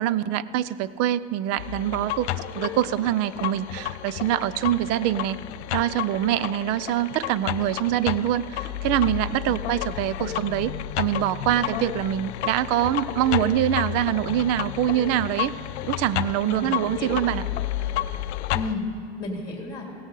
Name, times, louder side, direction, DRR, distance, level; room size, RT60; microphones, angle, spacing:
voice 1, 0.0-5.4 5.7-15.6 15.9-17.4, right 12 dB, 50° right, 18 dB, 0.5 m, -24 dB
sound 1, 1.6-18.8, left 13 dB, 85° left, 0.6 m, -31 dB
voice 2, 16.4-17.4 18.5-18.9 19.2-19.9, left 3 dB, 15° left, 0 dB, 2.4 m, -33 dB
16.5 x 16.0 x 3.9 m, 2.7 s
supercardioid pair, 110°, 33 cm